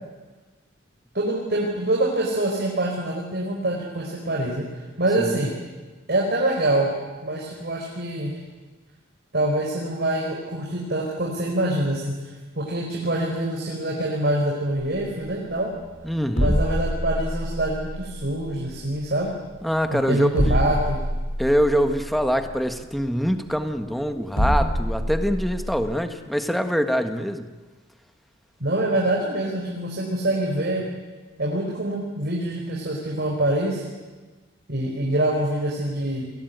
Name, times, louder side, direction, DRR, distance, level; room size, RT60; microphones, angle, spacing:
voice 1, 1.1-5.5 6.1-6.9 7.2-8.4 9.3-15.7 16.4-19.3 19.9-21.0 28.6-30.9 31.4-33.8 34.7-36.3, right 1 dB, 50° right, -1 dB, 4.8 m, -25 dB
sound 1, 15.0-26.0, equal, 90° left, 6.1 m, -27 dB
voice 2, 16.0-16.5 19.6-20.6 21.4-27.5, equal, ahead, 7 dB, 1.5 m, -24 dB
29.0 x 22.0 x 9.5 m, 1.3 s
head